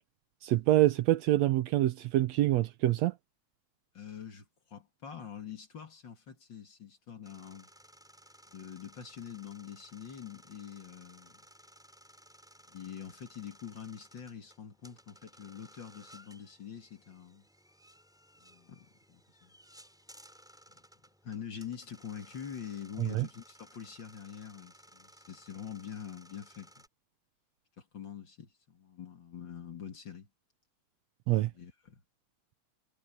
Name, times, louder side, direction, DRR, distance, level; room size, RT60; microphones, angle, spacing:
voice 1, 0.4-3.1 23.0-23.3 31.3-31.5, right 15 dB, 75° right, 1.8 m, -26 dB
voice 2, 3.9-7.7 8.5-11.4 12.7-17.4 18.4-19.5 21.2-26.7 27.8-30.3 31.5-32.0, left 8 dB, 40° left, 2.4 m, -45 dB
sound 1, 7.2-26.9, equal, ahead, 4.4 m, -59 dB
omnidirectional pair, 3.4 m